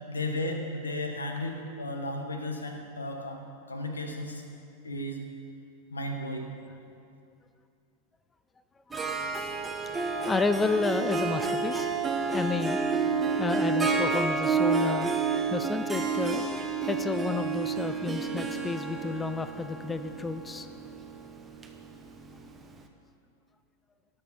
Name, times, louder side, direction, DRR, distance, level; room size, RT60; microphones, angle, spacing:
voice 1, 0.1-3.4 3.7-4.4 4.8-5.2 5.9-6.5, left 1 dB, 75° left, 4 dB, 1.4 m, -34 dB
Harp, 8.9-22.5, right 4 dB, 15° right, 0.9 m, -29 dB
voice 2, 10.3-11.9 12.3-12.8 13.4-15.1 15.5-16.4 16.9-20.7, left 4 dB, 15° left, 11 dB, 0.4 m, -31 dB
18.5 x 6.6 x 4.4 m, 2.5 s
figure-of-eight pair, 90°, 0 cm